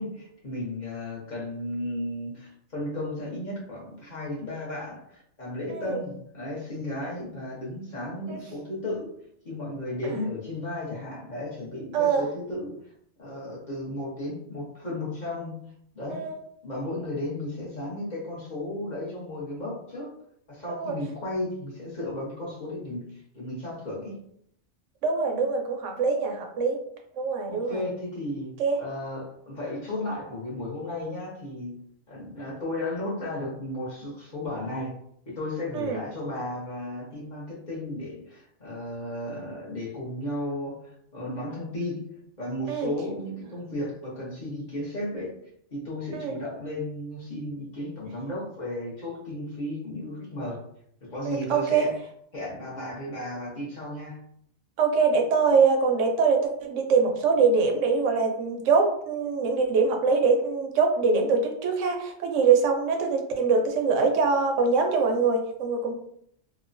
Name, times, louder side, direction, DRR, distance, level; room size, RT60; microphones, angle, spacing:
voice 1, 0.0-9.1 9.4-12.9 13.2-15.6 15.9-16.2 16.6-20.1 20.5-24.2 27.5-31.8 32.1-34.9 35.3-42.0 42.4-45.4 45.7-50.6 51.0-51.9 52.3-54.2, left 1 dB, 40° left, -6 dB, 0.9 m, -34 dB
voice 2, 25.0-26.8 27.1-27.8 28.6-28.8 35.7-36.0 42.7-42.9 46.1-46.3 51.3-51.9 54.8-65.9, right 5 dB, 90° right, 3 dB, 0.9 m, -23 dB
2.9 x 2.1 x 2.5 m, 0.69 s
omnidirectional pair, 1.2 m